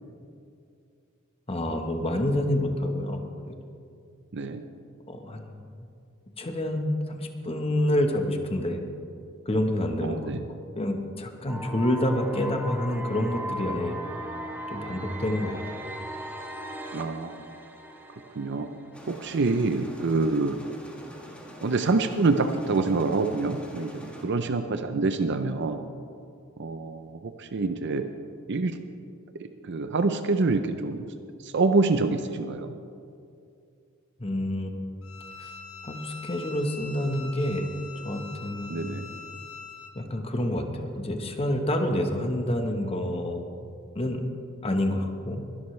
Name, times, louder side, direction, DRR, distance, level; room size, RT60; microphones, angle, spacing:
voice 1, 1.5-3.2 5.1-5.7 6.4-8.8 9.4-10.3 10.8-14.0 14.7-15.8 34.2-34.9 35.4-35.5 35.8-37.7 38.0-38.9 39.9-43.5 43.9-44.2 44.6-45.5, left 1 dB, 30° left, 5 dB, 1.1 m, -28 dB
voice 2, 4.3-4.6 10.0-10.4 16.9-17.3 18.4-18.7 19.1-20.6 21.6-25.8 26.6-28.1 28.5-28.7 29.6-31.1 31.4-32.8 38.7-39.1, right 3 dB, 55° right, 8 dB, 0.5 m, -26 dB
sound 1, 11.5-19.4, right 1 dB, 10° right, 1.0 m, -38 dB
sound 2, 18.9-24.2, equal, 5° left, 1.6 m, -45 dB
Bowed string instrument, 35.0-39.9, left 4 dB, 80° left, 1.4 m, -43 dB
21.5 x 11.5 x 3.2 m, 2.4 s
head